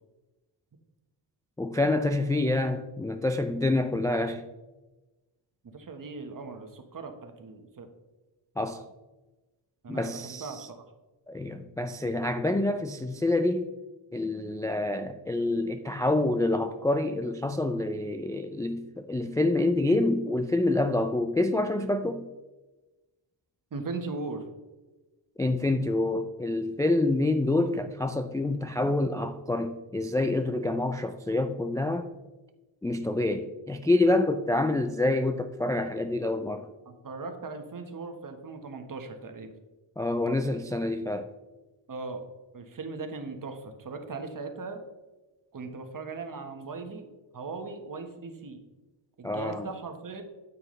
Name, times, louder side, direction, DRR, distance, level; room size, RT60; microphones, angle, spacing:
voice 1, 1.6-4.4 8.6-8.8 9.9-10.7 11.3-13.7 14.1-22.3 25.4-32.1 32.8-36.7 40.0-41.3 49.2-49.7, left 2 dB, 10° left, 7 dB, 0.3 m, -27 dB
voice 2, 5.6-7.9 9.8-10.9 23.7-24.5 36.8-39.5 41.9-42.3 42.5-44.8 45.5-48.6 49.2-50.2, right 4 dB, 45° right, 6 dB, 1.3 m, -39 dB
9.1 x 8.5 x 3.2 m, 1.1 s
wide cardioid pair, 115°, 46 cm